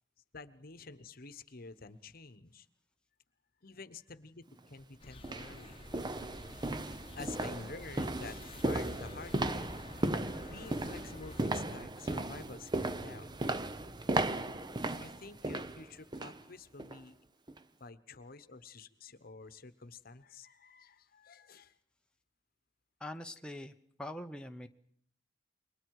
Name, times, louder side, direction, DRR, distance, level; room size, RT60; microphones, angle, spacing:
voice 1, 0.3-2.7 3.6-5.8 7.2-9.7 10.4-13.4 14.8-17.2 17.8-21.7, left 4 dB, 55° left, 13 dB, 1.1 m, -49 dB
sound 1, 4.5-4.6 5.2-16.4 16.8-17.0 17.5-17.6, right 2 dB, 25° right, 0.8 m, -36 dB
sound 2, 5.0-11.5, left 2 dB, 30° left, 1.1 m, -51 dB
voice 2, 23.0-23.7 24.0-24.7, left 1 dB, 5° left, 4 dB, 0.9 m, -43 dB
29.0 x 23.0 x 4.8 m, 0.64 s
head